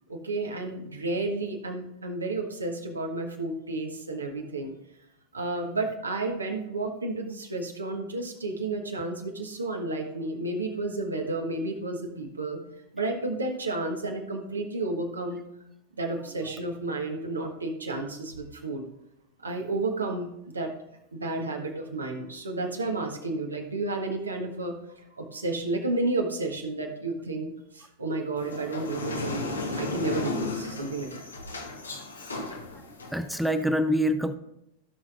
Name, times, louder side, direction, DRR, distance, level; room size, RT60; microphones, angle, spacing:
voice 1, 0.1-4.7 5.3-12.6 12.9-15.4 16.0-18.8 19.4-20.3 20.5-20.7 21.1-24.8 25.1-31.2, right 2 dB, 75° right, 2 dB, 1.4 m, -31 dB
sound 1, 28.4-33.6, left 3 dB, 75° left, 1.3 m, -35 dB
voice 2, 32.3-32.6 33.1-34.4, equal, ahead, 9 dB, 0.6 m, -26 dB
16.0 x 6.1 x 2.5 m, 0.82 s
figure-of-eight pair, 90°, 0 cm